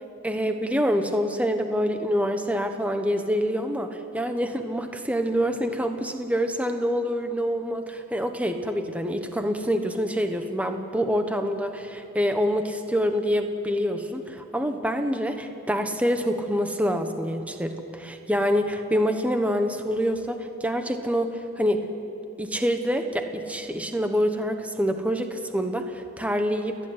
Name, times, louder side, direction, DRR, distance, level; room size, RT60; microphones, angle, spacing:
voice 1, 0.2-21.9 22.4-26.8, equal, 5° right, 6 dB, 1.1 m, -26 dB
29.5 x 10.5 x 9.6 m, 2.8 s
head